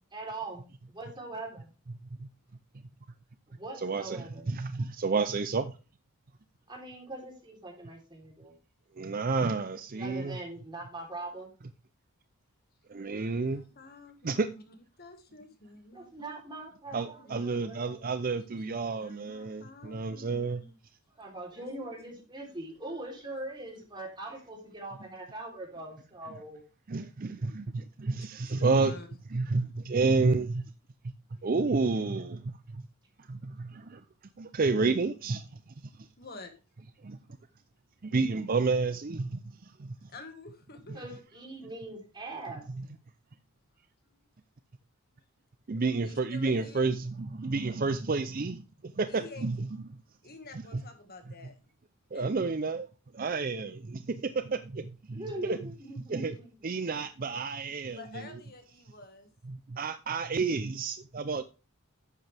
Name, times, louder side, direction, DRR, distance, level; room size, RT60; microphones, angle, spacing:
voice 1, 0.1-0.6 0.9-1.7 3.5-4.5 6.7-8.5 9.9-11.5 15.9-18.2 21.2-26.6 40.9-42.7 55.1-56.5, right 2 dB, 20° right, 3.5 m, -42 dB
voice 2, 3.8-5.7 9.0-10.4 12.9-13.6 14.2-14.5 16.9-20.6 26.9-28.9 29.3-30.6 31.4-32.8 33.3-34.0 34.4-35.5 37.0-37.2 38.0-39.9 45.7-49.6 50.7-50.8 52.1-52.9 53.1-55.6 56.1-56.4 56.6-58.0 59.5-61.4, right 4 dB, 40° right, 0.5 m, -30 dB
voice 3, 13.1-16.4 16.9-17.6 18.4-18.6 18.9-20.7 21.6-21.9 22.4-22.6 22.9-23.8 28.2-29.1 29.4-29.6 31.3-31.5 36.2-36.5 40.1-41.5 44.0-44.2 46.0-46.9 49.1-49.5 50.2-51.7 52.1-52.5 58.0-59.3, left 3 dB, 45° left, 1.8 m, -50 dB
11.0 x 8.0 x 3.4 m
head